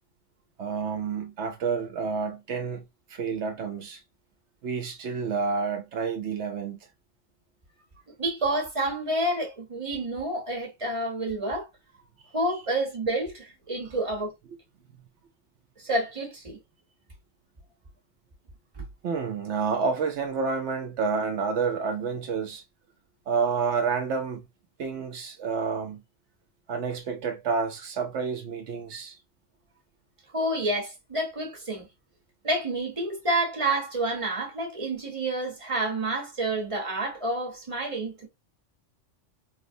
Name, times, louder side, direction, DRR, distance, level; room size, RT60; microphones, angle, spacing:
voice 1, 0.6-4.0 4.6-6.8 19.0-22.6 23.3-24.4 24.8-26.0 26.7-29.2, right 5 dB, 70° right, 0.9 m, -29 dB
voice 2, 8.2-11.7 12.3-14.3 15.8-16.6 18.7-18.8 30.3-31.9 32.4-38.3, right 1 dB, 30° right, 1.0 m, -29 dB
4.2 x 2.0 x 2.6 m
omnidirectional pair, 1.3 m